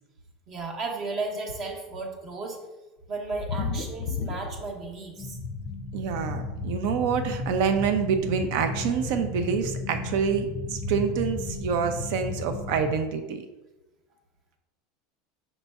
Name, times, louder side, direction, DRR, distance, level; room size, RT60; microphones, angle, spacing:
voice 1, 0.5-2.6 3.1-5.4, right 3 dB, 40° right, 2 dB, 0.8 m, -34 dB
sound 1, 3.2-5.2 5.5-6.2 7.2-7.3 7.7-7.8 8.0-8.1, left 5 dB, 70° left, 0.5 m, -33 dB
sound 2, 5.2-12.9, left 3 dB, 20° left, 0.5 m, -34 dB
voice 2, 5.9-13.4, right 6 dB, 65° right, 8 dB, 0.5 m, -27 dB
5.3 x 3.9 x 2.3 m, 1.1 s
supercardioid pair, 135°, 0 cm